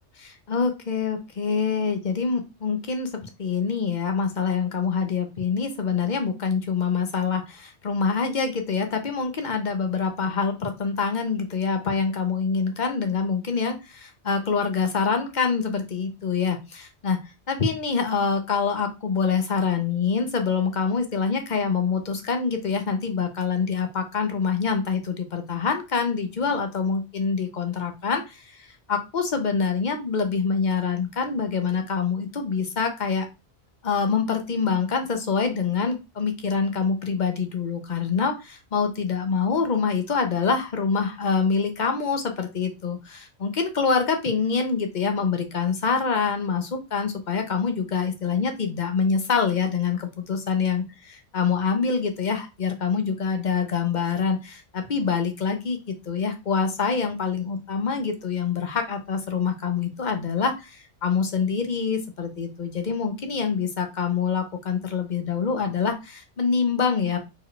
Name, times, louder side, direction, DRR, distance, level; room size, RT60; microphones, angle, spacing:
voice 1, 0.2-17.2 17.5-33.3 33.8-67.2, left 5 dB, 40° left, 6 dB, 0.9 m, -25 dB
4.4 x 3.1 x 3.3 m, 0.26 s
omnidirectional pair, 1.3 m